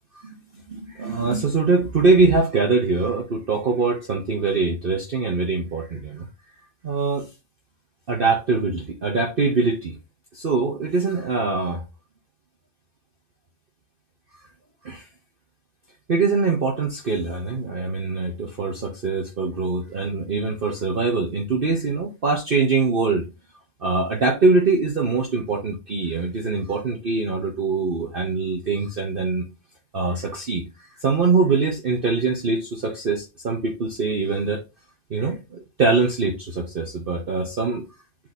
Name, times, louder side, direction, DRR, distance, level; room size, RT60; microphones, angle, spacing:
voice 1, 0.7-6.3 6.8-7.3 8.1-9.9 10.3-11.8 14.8-15.0 16.1-23.3 23.8-29.5 29.9-30.7 31.0-34.6 35.1-37.8, right 4 dB, 40° right, 1.1 m, -23 dB
7.6 x 2.9 x 4.2 m
omnidirectional pair, 1.5 m